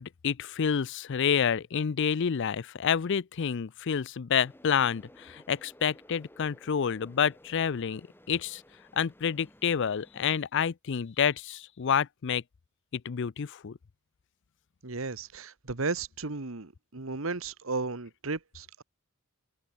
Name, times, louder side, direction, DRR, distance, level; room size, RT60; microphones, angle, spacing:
voice 1, 0.0-8.0 8.3-8.6 8.9-12.4 12.9-13.8, left 7 dB, 55° left, 0.5 m, -28 dB
sound 1, 4.4-10.4, left 1 dB, 10° left, 6.9 m, -56 dB
voice 2, 14.8-18.8, right 3 dB, 65° right, 1.4 m, -34 dB
head